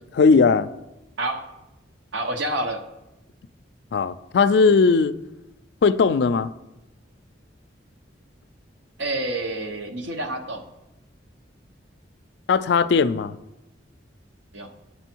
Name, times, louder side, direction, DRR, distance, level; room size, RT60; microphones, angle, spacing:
voice 1, 0.1-0.7 3.9-5.1 5.8-6.5 12.5-13.4, left 4 dB, 60° left, 0.3 m, -18 dB
voice 2, 2.1-2.8 9.0-10.6 14.5-14.7, right 1 dB, 75° right, 1.0 m, -28 dB
8.7 x 6.9 x 4.5 m
head